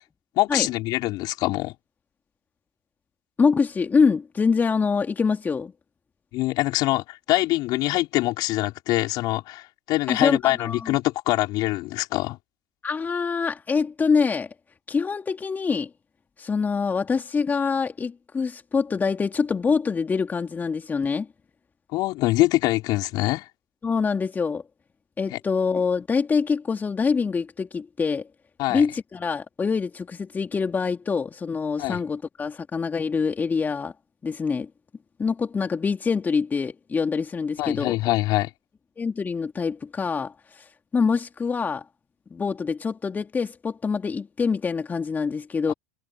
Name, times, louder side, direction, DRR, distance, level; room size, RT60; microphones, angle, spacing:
voice 1, 0.4-1.7 6.3-12.4 21.9-23.5 25.3-25.4 28.6-28.8 31.8-32.0 37.6-38.5 45.7-45.8, left 19 dB, 45° left, 4.3 m, -24 dB
voice 2, 3.4-5.7 10.1-10.9 12.8-14.5 14.9-15.9 16.4-21.3 23.8-24.6 25.2-28.3 28.7-33.9 34.2-34.7 35.2-38.0 39.0-41.9 42.3-45.7, left 5 dB, 20° left, 2.5 m, -25 dB
figure-of-eight pair, 80°, 9 cm